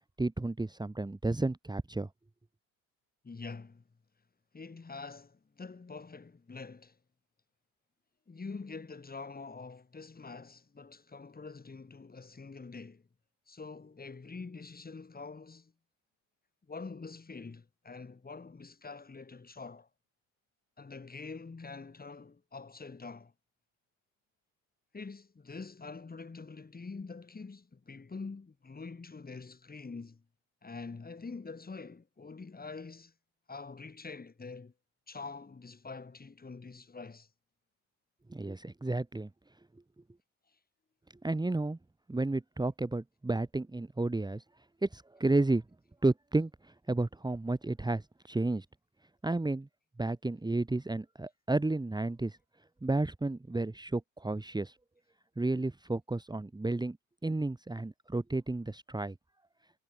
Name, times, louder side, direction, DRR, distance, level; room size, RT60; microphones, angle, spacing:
voice 1, 0.2-2.1 38.3-39.3 41.2-41.8 42.1-44.4 44.8-45.6 46.0-48.7 49.2-49.7 50.0-52.4 52.8-54.8 55.4-57.0 57.2-59.2, right 2 dB, 10° right, 2.4 m, -32 dB
voice 2, 3.2-3.8 4.5-7.0 8.3-13.0 13.5-15.7 16.7-19.9 20.8-23.3 24.9-30.2 30.6-33.1 33.5-34.7 35.1-37.3, left 4 dB, 25° left, 5.7 m, -45 dB
hypercardioid pair, 70°, 39 cm